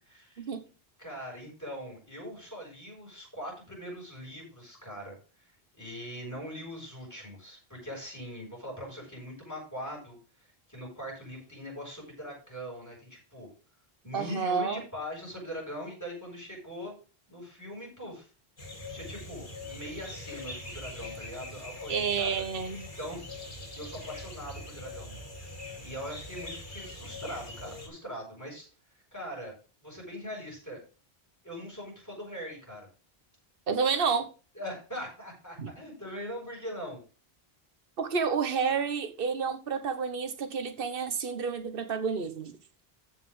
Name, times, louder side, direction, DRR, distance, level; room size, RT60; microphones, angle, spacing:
voice 1, 0.1-0.5 1.0-5.2 5.7-10.2 10.7-13.5 14.0-16.9 17.3-18.3 18.9-22.4 23.0-23.2 23.8-25.1 25.8-28.7 29.1-29.5 29.8-30.8 31.4-32.9 34.5-37.0, equal, 15° left, -3 dB, 6.9 m, -41 dB
voice 2, 14.1-14.8 21.9-22.9 33.7-34.3 35.6-35.7 38.0-42.5, right 5 dB, 60° right, 8 dB, 1.3 m, -30 dB
sound 1, 18.6-27.9, left 2 dB, 55° left, 3.2 m, -42 dB
14.0 x 6.1 x 3.7 m, 0.35 s
omnidirectional pair, 1.0 m